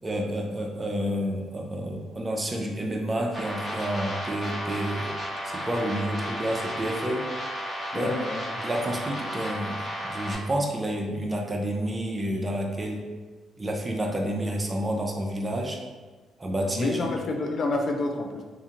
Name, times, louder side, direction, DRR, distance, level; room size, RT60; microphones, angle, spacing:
voice 1, 0.0-5.1 5.4-7.3 7.9-8.1 8.6-13.0 13.6-15.8 16.4-17.1, right 1 dB, 25° right, 1 dB, 0.4 m, -29 dB
sound 1, 3.3-10.3, equal, 25° left, 0.8 m, -33 dB
voice 2, 7.9-8.6 16.7-18.4, left 2 dB, 50° left, 2 dB, 0.3 m, -29 dB
2.8 x 2.5 x 2.5 m, 1.4 s
cardioid pair, 90°, 0 cm